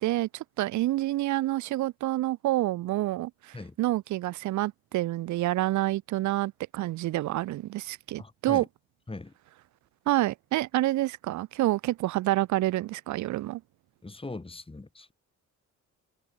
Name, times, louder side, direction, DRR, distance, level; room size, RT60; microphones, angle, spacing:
voice 1, 0.0-8.6 10.1-13.6, right 16 dB, 70° right, 0.6 m, -28 dB
voice 2, 8.2-8.7 9.1-9.3 14.0-15.1, left 3 dB, 20° left, 4.5 m, -40 dB
cardioid pair, 90°, 30 cm